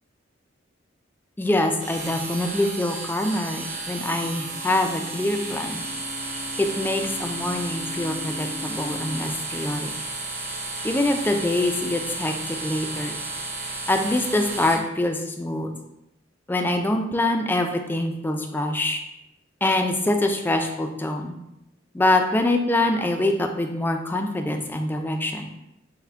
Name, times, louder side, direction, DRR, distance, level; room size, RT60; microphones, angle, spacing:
voice 1, 1.4-5.8 6.6-9.9 10.8-13.2 13.9-15.7 16.5-19.0 19.6-21.3 21.9-25.5, left 1 dB, 10° left, 4 dB, 0.3 m, -24 dB
sound 1, 1.8-14.7, right 3 dB, 40° right, 0.7 m, -33 dB
sound 2, 3.3-9.1, left 3 dB, 90° left, 1.2 m, -41 dB
5.6 x 2.1 x 3.4 m, 0.87 s
head